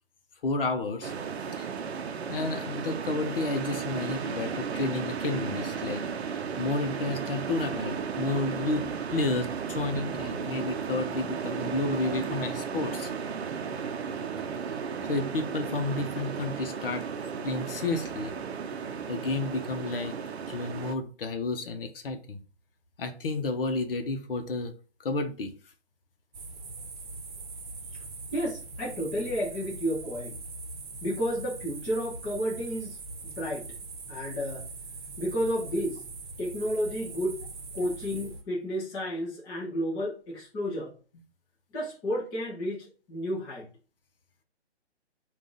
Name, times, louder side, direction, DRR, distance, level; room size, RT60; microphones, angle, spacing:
voice 1, 0.4-1.1 1.6-1.7 2.3-6.0 6.6-8.8 9.1-13.1 15.1-17.1 17.4-18.3 19.1-20.2 20.5-22.4 23.0-24.7 25.0-25.5 37.8-37.9, left 3 dB, 55° left, 0.8 m, -31 dB
sound 1, 1.0-20.9, right 6 dB, 70° right, 0.6 m, -34 dB
sound 2, 26.3-38.4, right 3 dB, 45° right, 0.9 m, -41 dB
voice 2, 28.3-30.4 31.0-33.0 33.2-33.7 34.1-34.6 35.2-36.0 36.4-37.4 37.7-40.9 41.7-43.7, equal, 10° left, 0.5 m, -31 dB
3.7 x 2.4 x 3.6 m
figure-of-eight pair, 145°, 33 cm